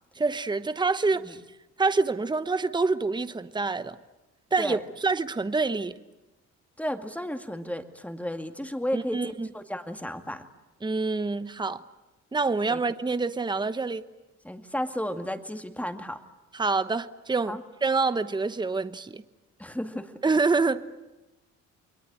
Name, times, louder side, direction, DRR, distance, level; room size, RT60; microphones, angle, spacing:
voice 1, 0.2-1.4 1.8-4.0 4.5-6.0 8.9-9.5 10.8-11.8 12.3-14.0 16.5-19.2 20.2-20.8, right 3 dB, 15° right, 1.0 m, -26 dB
voice 2, 6.8-10.5 12.7-12.8 14.4-16.2 17.5-17.6 19.6-20.1, equal, 5° left, 2.2 m, -33 dB
29.0 x 22.0 x 8.9 m
cardioid pair, 90°, 30 cm